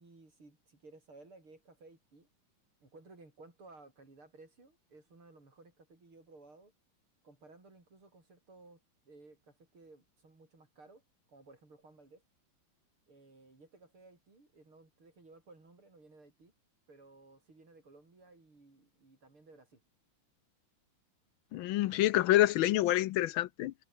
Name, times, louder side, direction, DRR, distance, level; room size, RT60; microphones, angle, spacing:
voice 1, 0.0-2.3 2.8-6.7 7.2-11.0 11.3-12.2 13.1-16.5 16.9-19.8, right 3 dB, 75° right, 7.6 m, -58 dB
voice 2, 21.5-23.7, left 14 dB, 75° left, 1.3 m, -27 dB
omnidirectional pair, 2.4 m